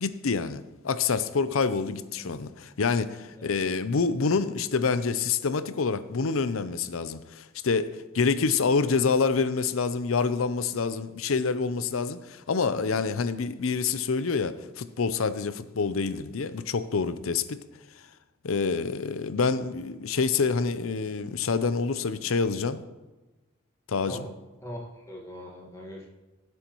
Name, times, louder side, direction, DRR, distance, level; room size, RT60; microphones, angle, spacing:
voice 1, 0.0-17.6 18.4-22.8 23.9-24.3, left 5 dB, 85° left, 13 dB, 0.6 m, -27 dB
voice 2, 2.2-2.5 3.3-3.5 24.1-24.3 24.6-26.1, equal, 15° left, -2 dB, 1.7 m, -41 dB
16.0 x 7.9 x 3.1 m, 1.1 s
head